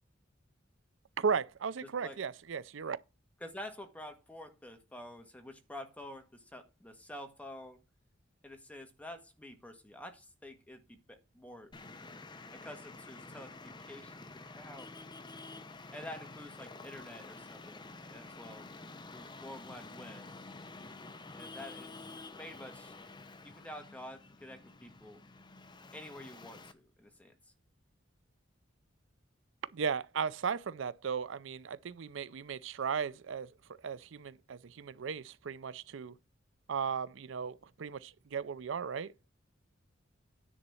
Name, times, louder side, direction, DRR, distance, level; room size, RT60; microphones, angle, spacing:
voice 1, 1.2-3.0 29.7-33.5 33.8-36.1 36.7-39.1, right 6 dB, 75° right, 0.5 m, -36 dB
voice 2, 1.8-2.2 3.4-7.8 8.4-11.7 12.5-14.9 15.9-18.7 19.1-20.3 21.3-21.9 22.4-22.9 23.4-25.2 25.9-27.3, left 1 dB, 5° left, 1.6 m, -48 dB
Traffic noise roadway noise, 11.7-26.7, left 3 dB, 25° left, 0.8 m, -49 dB
10.0 x 4.0 x 6.9 m
head